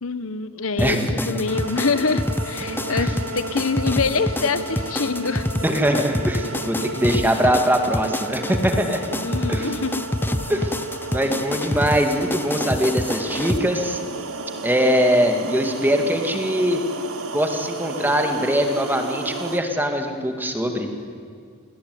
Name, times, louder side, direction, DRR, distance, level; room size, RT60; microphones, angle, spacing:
voice 1, 0.0-5.5 9.2-10.1, left 4 dB, 65° left, 12 dB, 1.0 m, -25 dB
sound 1, 0.8-13.6, left 1 dB, 10° left, 0.6 m, -27 dB
voice 2, 0.8-1.4 2.9-3.1 5.6-9.0 9.5-9.7 10.5-10.7 11.1-14.0 14.6-16.8 17.3-20.9, equal, 10° right, 4 dB, 2.2 m, -22 dB
sound 2, 1.5-19.6, right 2 dB, 75° right, 1.8 m, -33 dB
28.0 x 20.5 x 9.5 m, 2.2 s
head